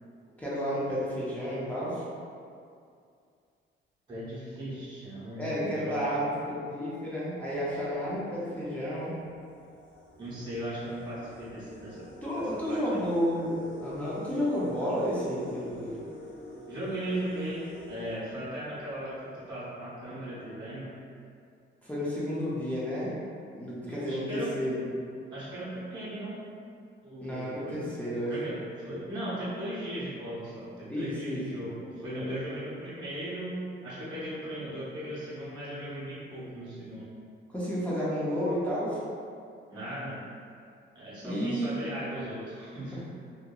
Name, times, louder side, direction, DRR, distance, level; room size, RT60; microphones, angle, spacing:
voice 1, 0.4-2.0 5.4-9.1 12.2-16.0 21.8-23.2 23.5-24.9 27.2-28.3 30.9-31.6 37.5-39.0 41.2-41.8 42.9-43.0, equal, 5° left, -9 dB, 0.4 m, -31 dB
voice 2, 4.1-6.3 10.2-12.1 12.3-13.1 16.7-20.9 23.9-24.6 25.3-26.4 27.0-27.8 28.3-37.1 39.7-40.2 40.9-43.0, right 1 dB, 20° right, -11 dB, 0.7 m, -37 dB
sound 1, 7.8-7.9 8.6-8.7 9.1-18.9, left 1 dB, 45° left, 0.7 m, -46 dB
2.8 x 2.5 x 2.2 m, 2.4 s
cardioid pair, 180°, 20 cm